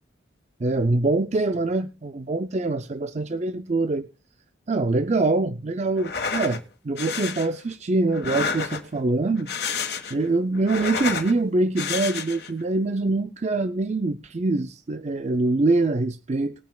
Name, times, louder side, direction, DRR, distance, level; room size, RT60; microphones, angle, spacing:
voice 1, 0.6-4.0 4.7-9.5 10.1-16.5, right 2 dB, 35° right, 10 dB, 0.5 m, -24 dB
sound 1, 6.0-6.6 7.0-7.5 8.1-9.0 9.4-10.2 10.5-11.3 11.8-12.5, left 5 dB, 55° left, 1.5 m, -30 dB
20.5 x 9.2 x 2.3 m, 0.29 s
head